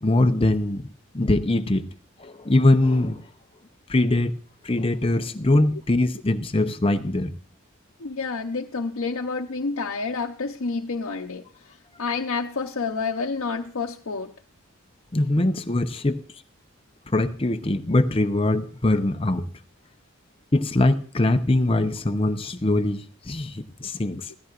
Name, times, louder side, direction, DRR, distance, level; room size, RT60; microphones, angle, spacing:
voice 1, 0.0-0.9 1.1-1.9 2.2-3.2 3.9-4.3 4.6-7.3 15.1-16.2 17.1-19.5 20.5-24.3, left 2 dB, 25° left, 0.7 m, -22 dB
voice 2, 8.0-11.4 12.0-14.3 24.3-24.4, left 4 dB, 80° left, 0.8 m, -29 dB
16.0 x 13.5 x 2.5 m
head